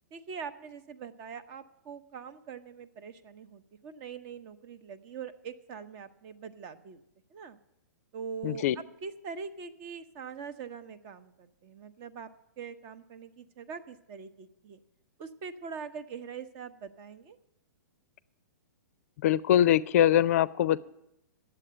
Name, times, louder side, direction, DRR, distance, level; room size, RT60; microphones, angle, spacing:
voice 1, 0.1-7.0 7.3-7.6 8.1-12.3 12.6-14.8 15.2-17.4, right 6 dB, 40° right, 12 dB, 0.8 m, -43 dB
voice 2, 8.4-8.8 19.2-20.8, left 11 dB, 50° left, 17 dB, 0.4 m, -23 dB
9.8 x 7.7 x 8.9 m, 0.85 s
hypercardioid pair, 130°, 10 cm